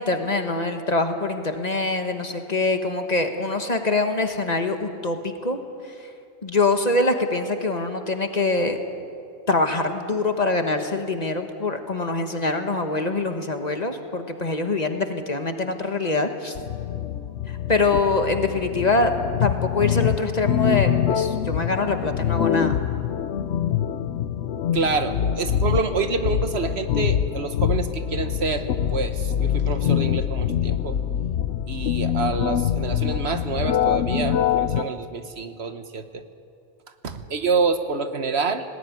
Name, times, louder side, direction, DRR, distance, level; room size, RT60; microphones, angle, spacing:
voice 1, 0.0-5.6 6.4-8.8 9.5-16.6 17.5-19.1 19.4-22.8, left 3 dB, 40° left, 6 dB, 1.5 m, -24 dB
sound 1, 16.6-34.8, left 9 dB, 80° left, 1.1 m, -24 dB
voice 2, 24.7-31.0 31.7-36.2 37.0-38.6, right 4 dB, 70° right, 8 dB, 1.4 m, -27 dB
19.5 x 18.5 x 9.6 m, 2.4 s
omnidirectional pair, 1.1 m